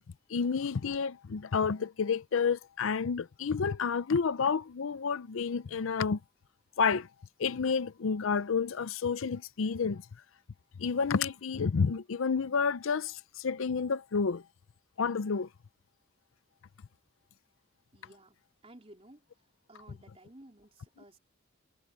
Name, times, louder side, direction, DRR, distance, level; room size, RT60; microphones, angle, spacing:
voice 1, 0.3-6.2 6.8-7.1 7.4-10.0 10.8-14.4 15.0-15.5, left 5 dB, 75° left, 0.5 m, -30 dB
voice 2, 17.9-19.2 19.7-21.2, right 1 dB, 30° right, 4.2 m, -55 dB
head